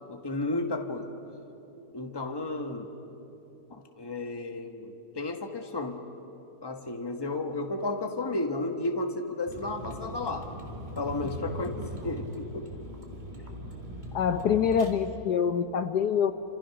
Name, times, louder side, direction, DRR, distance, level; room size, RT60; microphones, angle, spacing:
voice 1, 0.1-1.1 1.9-2.9 3.7-6.0 6.6-10.5 10.9-12.7, left 2 dB, 15° left, 5 dB, 1.3 m, -33 dB
Vehicle, 9.5-14.9, right 1 dB, 25° right, 2.7 m, -40 dB
voice 2, 14.1-16.3, left 7 dB, 70° left, 10 dB, 1.3 m, -25 dB
30.0 x 27.0 x 6.0 m, 2.9 s
omnidirectional pair, 1.9 m